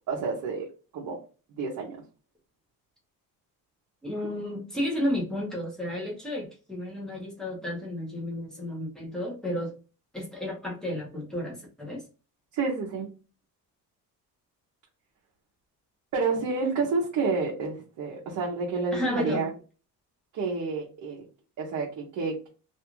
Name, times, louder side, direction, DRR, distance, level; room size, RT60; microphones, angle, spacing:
voice 1, 0.1-0.7 0.9-1.2 1.5-2.0 12.5-13.1 16.1-19.5 20.3-21.3 21.6-22.5, right 4 dB, 55° right, -3 dB, 0.7 m, -29 dB
voice 2, 4.0-9.7 10.1-12.0 18.9-19.5, left 1 dB, ahead, -4 dB, 0.8 m, -32 dB
2.5 x 2.3 x 2.9 m, 0.35 s
cardioid pair, 175°, 36 cm